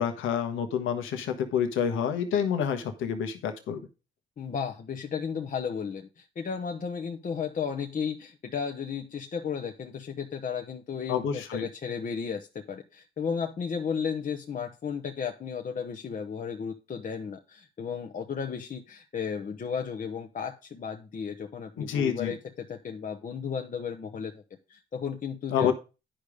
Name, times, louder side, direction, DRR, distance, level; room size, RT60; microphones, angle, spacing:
voice 1, 0.0-3.8 11.1-11.6 21.8-22.3 25.5-25.7, left 8 dB, 85° left, 7 dB, 1.3 m, -28 dB
voice 2, 4.4-24.4 24.7-25.7, left 6 dB, 40° left, 3 dB, 0.9 m, -34 dB
10.0 x 5.3 x 5.0 m, 0.31 s
cardioid pair, 90°, 20 cm